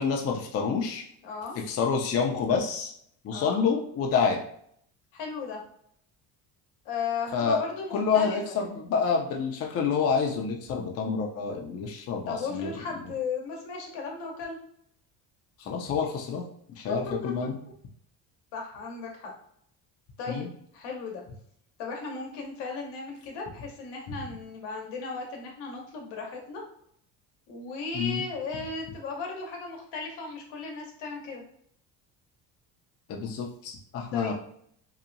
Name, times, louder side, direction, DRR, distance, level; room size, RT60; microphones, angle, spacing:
voice 1, 0.0-1.0 1.7-2.9 3.2-4.4 7.3-7.6 7.9-12.7 15.6-16.4 16.8-17.6 20.3-20.5 27.9-28.2 33.1-34.4, left 5 dB, 40° left, 1 dB, 0.5 m, -28 dB
voice 2, 1.2-1.6 3.3-3.6 5.1-5.6 6.8-8.7 12.3-14.6 16.9-17.3 18.5-19.3 20.2-20.5 20.7-21.2 21.8-26.6 27.5-31.4 34.1-34.4, left 4 dB, 85° left, 1 dB, 0.9 m, -36 dB
2.8 x 2.1 x 2.5 m, 0.67 s
cardioid pair, 110°, 40 cm